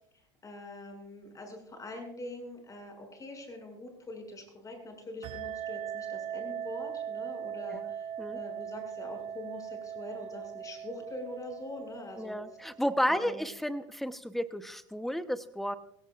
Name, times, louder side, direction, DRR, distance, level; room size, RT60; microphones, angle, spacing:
voice 1, 0.4-8.1 8.3-12.4 13.1-13.4, left 1 dB, 20° left, 3 dB, 6.8 m, -44 dB
sound 1, 5.2-13.4, right 9 dB, 50° right, 7.7 m, -40 dB
voice 2, 12.2-15.8, equal, ahead, 10 dB, 1.0 m, -32 dB
23.0 x 17.0 x 2.5 m, 0.74 s
supercardioid pair, 105°, 15 cm